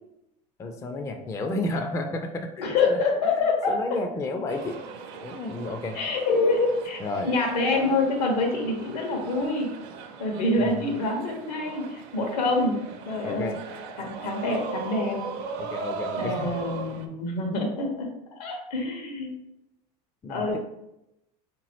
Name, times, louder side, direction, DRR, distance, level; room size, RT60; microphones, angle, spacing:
voice 1, 0.6-3.0 3.7-4.8 5.2-6.0 7.0-7.3 10.6-10.8 13.2-13.6 15.6-16.6 20.2-20.6, left 2 dB, 15° left, 5 dB, 0.3 m, -32 dB
voice 2, 2.6-3.8 5.9-9.7 10.2-13.5 14.0-15.2 16.1-19.4 20.3-20.6, left 3 dB, 80° left, 1 dB, 1.2 m, -26 dB
sound 1, 4.5-17.1, right 5 dB, 55° right, 0.5 m, -38 dB
3.5 x 2.9 x 3.0 m, 0.86 s
supercardioid pair, 105°, 20 cm